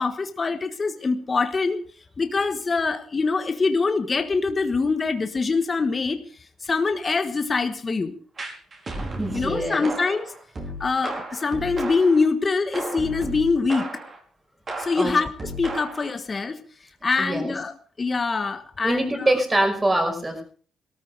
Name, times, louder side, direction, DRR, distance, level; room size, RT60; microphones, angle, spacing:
voice 1, 0.0-1.8 2.2-6.2 6.6-8.1 9.3-10.3 10.8-13.8 14.8-16.6 17.0-19.1, left 4 dB, 30° left, 8 dB, 1.4 m, -24 dB
sound 1, 8.4-12.3 12.7-14.2 14.7-16.2, right 1 dB, 35° right, 4.9 m, -34 dB
voice 2, 9.2-9.9 14.9-15.1 17.2-17.5 18.8-20.4, right 1 dB, 20° right, 5 dB, 5.4 m, -24 dB
18.0 x 13.5 x 4.8 m, 0.42 s
cardioid pair, 90°, 0 cm